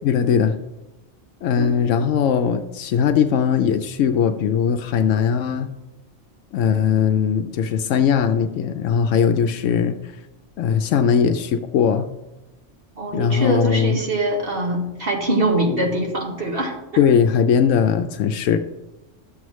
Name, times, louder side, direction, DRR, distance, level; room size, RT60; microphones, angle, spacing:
voice 1, 0.0-0.6 1.4-5.7 6.5-10.0 10.6-12.1 13.1-14.0 17.0-18.6, left 7 dB, 85° left, 7 dB, 0.9 m, -19 dB
voice 2, 13.0-16.7, right 1 dB, 50° right, 0 dB, 1.8 m, -23 dB
12.0 x 7.8 x 3.1 m, 1.0 s
omnidirectional pair, 1.3 m